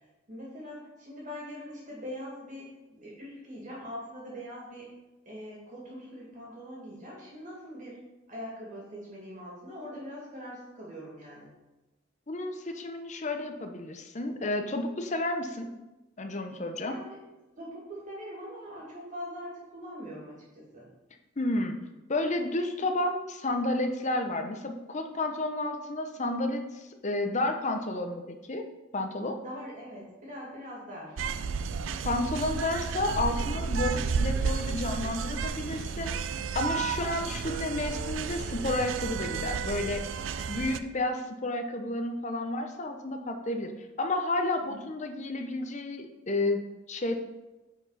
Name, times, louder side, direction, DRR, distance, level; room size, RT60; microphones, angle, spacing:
voice 1, 0.3-4.9 5.3-8.0 8.3-11.5 16.8-17.2 17.5-20.9 29.4-31.2 44.6-44.8, equal, 40° right, -5 dB, 2.4 m, -42 dB
voice 2, 12.3-15.7 16.2-17.0 21.4-21.7 22.1-28.7 28.9-29.4 32.0-40.1 40.5-43.7 44.0-47.2, left 2 dB, 40° left, 5 dB, 0.8 m, -31 dB
sound 1, 31.2-40.8, right 5 dB, 80° right, 0.4 m, -32 dB
9.4 x 4.7 x 4.1 m, 1.0 s
head